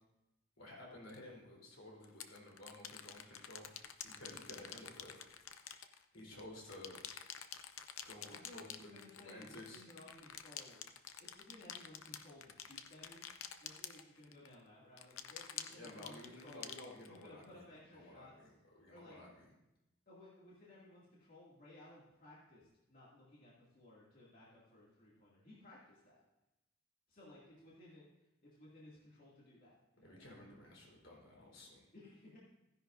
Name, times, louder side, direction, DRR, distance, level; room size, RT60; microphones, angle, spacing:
voice 1, 0.6-3.7 4.0-5.2 6.1-7.0 8.1-8.7 9.2-9.8 15.7-17.7 17.9-19.5 30.0-31.9, left 1 dB, 70° left, -3 dB, 3.9 m, -54 dB
sound 1, 1.1-1.2 2.0-6.4 6.7-14.5 15.0-17.4, left 9 dB, 90° left, 0.7 m, -49 dB
voice 2, 8.3-10.8 11.2-13.2 13.6-16.7 17.1-18.3 18.9-19.2 20.1-26.2 27.1-28.0 28.4-30.2 31.9-32.4, left 1 dB, 45° left, -7 dB, 2.4 m, -58 dB
15.0 x 10.5 x 2.6 m, 0.92 s
head